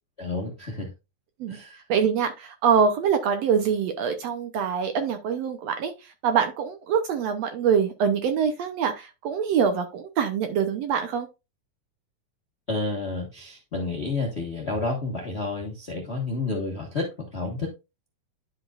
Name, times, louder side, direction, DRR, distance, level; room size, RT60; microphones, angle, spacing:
voice 1, 0.2-0.9 1.5-1.8 12.7-17.7, left 3 dB, 75° left, 0 dB, 0.6 m, -30 dB
voice 2, 1.9-5.9 6.2-11.3, right 7 dB, 70° right, 7 dB, 1.6 m, -24 dB
11.5 x 5.1 x 2.4 m, 0.26 s
omnidirectional pair, 3.7 m